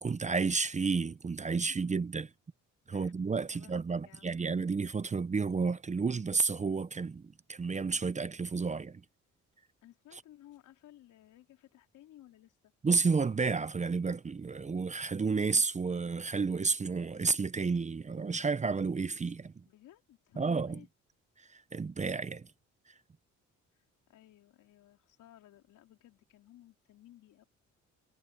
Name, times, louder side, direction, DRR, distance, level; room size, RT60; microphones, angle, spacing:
voice 1, 0.0-2.3 2.9-7.2 7.5-9.0 12.8-19.6 20.4-20.8 21.4-22.5, right 4 dB, 25° right, 0.7 m, -31 dB
voice 2, 3.5-4.4 9.8-12.7 19.6-20.9 24.1-27.4, left 13 dB, 85° left, 4.2 m, -57 dB
cardioid pair, 90°, 30 cm